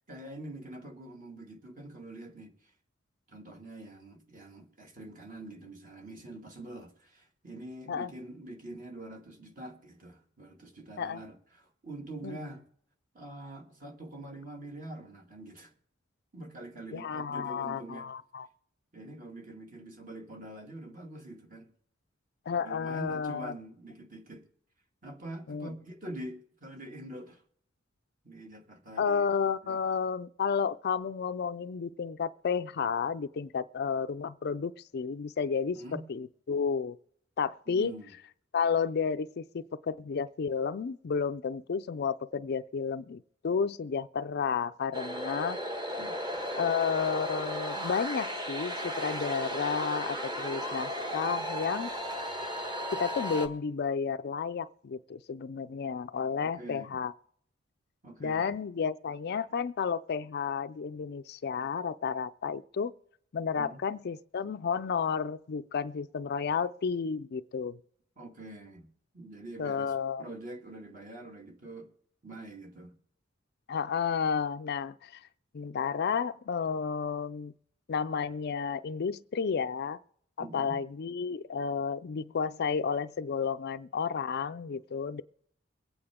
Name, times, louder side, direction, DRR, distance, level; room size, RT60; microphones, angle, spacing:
voice 1, 0.0-2.7 3.3-12.6 13.1-15.7 16.3-18.1 18.9-21.7 22.5-24.5 25.0-27.4 28.2-29.3 29.6-29.8 35.7-36.1 37.7-38.1 46.0-46.1 56.4-57.0 58.0-58.6 63.5-63.8 68.2-68.9 69.1-69.9 70.2-71.9 72.2-73.0 80.4-80.8, right 1 dB, 45° right, 2.2 m, -45 dB
voice 2, 16.9-18.5 22.5-23.5 25.5-25.7 29.0-37.0 37.4-37.9 38.5-45.6 46.6-51.9 52.9-57.1 58.2-62.9 63.3-67.8 69.6-70.2 73.7-75.2 75.5-77.5 77.9-80.0 80.4-85.2, left 6 dB, 55° left, 0.4 m, -32 dB
sound 1, 44.9-53.5, equal, 25° right, 1.4 m, -35 dB
23.5 x 8.8 x 3.6 m
head